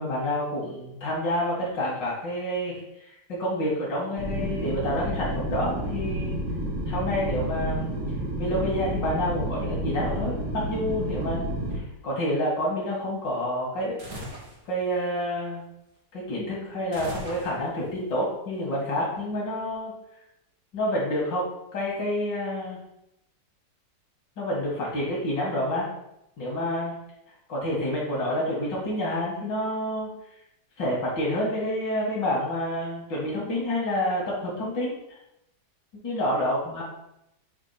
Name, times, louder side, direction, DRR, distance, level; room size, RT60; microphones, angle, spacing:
voice 1, 0.0-6.4 6.9-7.9 8.4-14.0 14.7-15.6 16.1-19.9 20.7-22.8 24.4-25.9 26.4-27.0 27.5-30.1 30.8-35.0 36.0-36.8, left 1 dB, 85° left, -5 dB, 2.6 m, -28 dB
sound 1, 4.2-11.8, right 1 dB, 80° right, 2.2 m, -30 dB
sound 2, 14.0-14.6 16.9-17.9, equal, 55° right, 2.1 m, -39 dB
7.3 x 3.4 x 5.8 m, 0.83 s
omnidirectional pair, 1.9 m